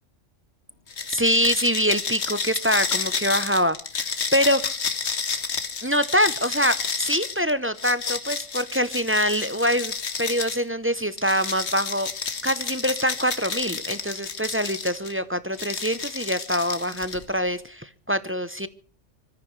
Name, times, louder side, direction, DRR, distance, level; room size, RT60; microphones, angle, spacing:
sound 1, 0.9-10.6 11.2-15.1 15.5-17.4, left 5 dB, 60° left, 1.6 m, -30 dB
voice 1, 1.1-4.1 4.3-4.8 5.8-9.9 10.2-12.1 12.4-18.7, equal, 15° right, 13 dB, 0.5 m, -24 dB
25.5 x 14.0 x 3.2 m, 0.42 s
omnidirectional pair, 1.3 m